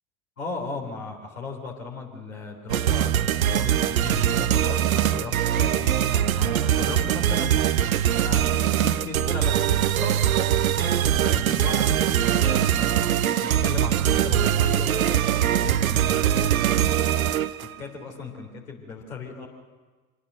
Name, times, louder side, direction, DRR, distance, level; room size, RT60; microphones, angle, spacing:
voice 1, 0.4-7.6 8.2-10.9 11.2-13.1 13.4-17.3 17.6-19.5, left 3 dB, 80° left, 0 dB, 3.6 m, -36 dB
sound 1, 2.7-17.8, right 10 dB, 85° right, 0.6 m, -22 dB
25.0 x 19.0 x 6.5 m, 1.4 s
figure-of-eight pair, 60°, 41 cm